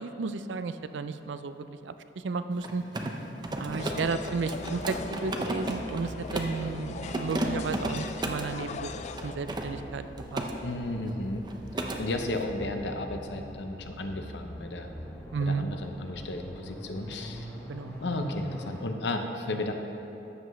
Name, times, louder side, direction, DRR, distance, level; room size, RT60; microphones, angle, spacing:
voice 1, 0.0-2.8 3.6-8.9 9.2-10.0 10.3-10.4 15.3-15.7 17.7-18.0, right 4 dB, 80° right, 11 dB, 0.4 m, -33 dB
Mechanisms, 2.5-6.6 7.0-8.5 9.1-10.5 10.8-11.2 11.4-12.0, right 1 dB, 25° right, 0.6 m, -34 dB
sound 1, 3.4-18.8, equal, 15° left, 1.4 m, -43 dB
sound 2, 3.8-9.3, left 4 dB, 40° left, 0.3 m, -40 dB
voice 2, 10.6-11.5 11.8-14.9 15.4-17.5 18.0-19.7, left 2 dB, 75° left, 5 dB, 0.8 m, -33 dB
12.5 x 7.9 x 3.1 m, 2.9 s
head